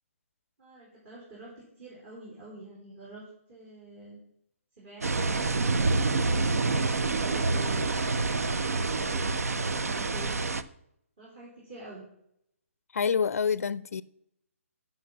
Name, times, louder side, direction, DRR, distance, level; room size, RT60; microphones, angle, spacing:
voice 1, 0.6-1.5 1.8-4.2 4.8-5.5 6.6-7.9 8.4-9.3 9.7-10.4 11.2-12.0, right 2 dB, 40° right, 4.1 m, -46 dB
sound 1, 5.0-10.6, right 3 dB, 85° right, 0.6 m, -27 dB
voice 2, 12.9-14.0, left 6 dB, 80° left, 0.4 m, -27 dB
8.3 x 6.0 x 7.2 m
hypercardioid pair, 150°, 8 cm